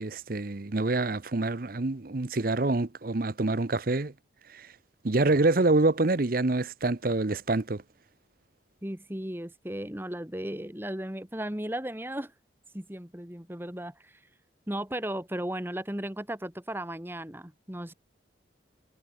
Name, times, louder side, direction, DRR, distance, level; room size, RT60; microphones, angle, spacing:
voice 1, 0.0-4.1 4.5-4.7 5.0-7.8, right 2 dB, 50° right, 0.8 m, -26 dB
voice 2, 8.8-12.3 12.7-14.2 14.7-17.9, right 1 dB, 10° right, 1.6 m, -35 dB
head